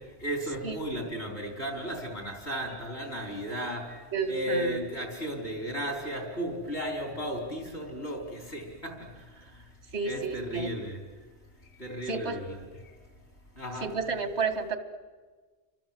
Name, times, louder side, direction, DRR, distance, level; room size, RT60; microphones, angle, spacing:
voice 1, 0.2-8.9 10.0-11.0 11.8-12.6 13.6-13.9, equal, 75° left, 3 dB, 5.2 m, -34 dB
voice 2, 4.1-4.8 9.9-10.7 12.1-12.4 13.8-14.8, right 4 dB, 90° right, 9 dB, 2.3 m, -31 dB
30.0 x 24.5 x 7.8 m, 1.4 s
omnidirectional pair, 1.1 m